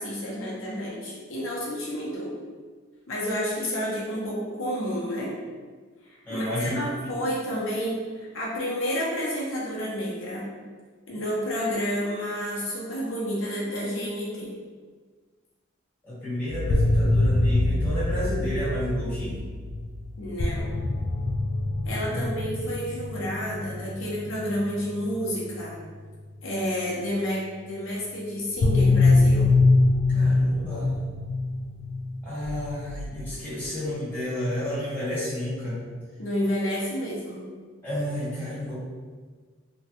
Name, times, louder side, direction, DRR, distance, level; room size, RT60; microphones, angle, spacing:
voice 1, 0.0-2.4 3.1-5.3 6.0-10.5 11.1-14.6 20.2-20.8 21.8-25.7 26.4-29.5 36.2-37.5, equal, 75° left, -6 dB, 0.7 m, -30 dB
voice 2, 6.3-6.8 16.0-19.4 22.1-22.3 30.1-31.0 32.2-35.8 37.8-38.8, left 1 dB, 10° left, -11 dB, 1.1 m, -31 dB
sound 1, 16.5-26.6 28.6-33.7, left 2 dB, 60° left, 0.3 m, -24 dB
3.1 x 2.2 x 2.8 m, 1.5 s
head